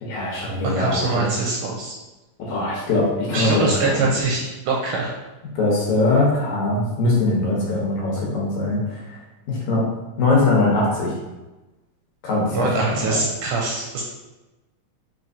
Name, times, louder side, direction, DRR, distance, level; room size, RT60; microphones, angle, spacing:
voice 1, 0.0-1.3 2.4-4.1 5.6-9.2 9.5-9.8 10.2-11.1 12.2-12.7 12.9-13.2, left 2 dB, 70° left, -4 dB, 2.0 m, -21 dB
voice 2, 0.6-2.0 3.3-5.1 12.5-14.0, right 3 dB, 80° right, -2 dB, 2.0 m, -23 dB
4.5 x 4.4 x 2.6 m, 1.1 s
omnidirectional pair, 3.8 m